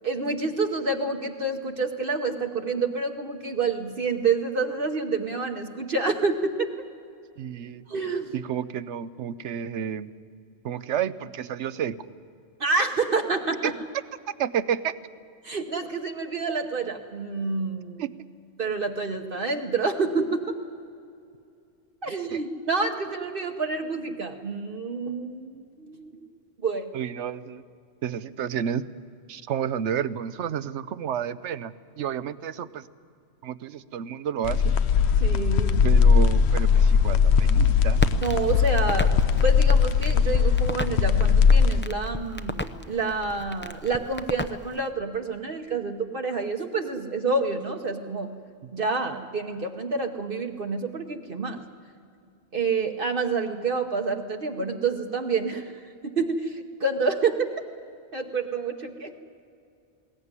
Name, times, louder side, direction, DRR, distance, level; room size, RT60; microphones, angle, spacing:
voice 1, 0.0-6.7 7.9-8.3 12.6-13.7 15.4-18.1 18.6-20.6 22.0-26.2 26.6-26.9 35.2-35.8 38.2-39.1 39.4-48.3 48.7-51.6 52.5-55.7 56.0-57.5 58.1-59.1, right 4 dB, 55° right, 3 dB, 1.2 m, -28 dB
voice 2, 7.4-7.8 8.3-10.1 10.6-11.9 13.6-13.7 14.4-14.9 18.0-18.1 22.1-22.4 26.9-27.6 28.0-28.8 29.3-32.8 33.4-34.7 35.8-38.0, right 8 dB, 85° right, 15 dB, 1.0 m, -30 dB
sound 1, 34.4-41.8, left 6 dB, 70° left, 0.9 m, -19 dB
Crackle, 37.9-44.9, left 1 dB, 15° left, 0.6 m, -35 dB
21.0 x 18.0 x 9.6 m, 2.5 s
omnidirectional pair, 1.2 m